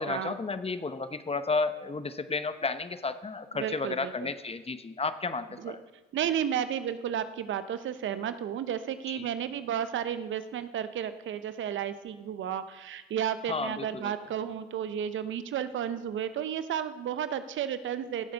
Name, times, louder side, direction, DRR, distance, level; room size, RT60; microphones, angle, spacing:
voice 1, 0.0-5.8 9.1-9.3 13.5-14.1, left 3 dB, 30° left, 11 dB, 1.0 m, -32 dB
voice 2, 3.5-4.3 5.6-5.8 6.1-18.3, right 9 dB, 65° right, 12 dB, 0.8 m, -32 dB
16.5 x 7.6 x 5.3 m, 1.2 s
supercardioid pair, 50°, 21 cm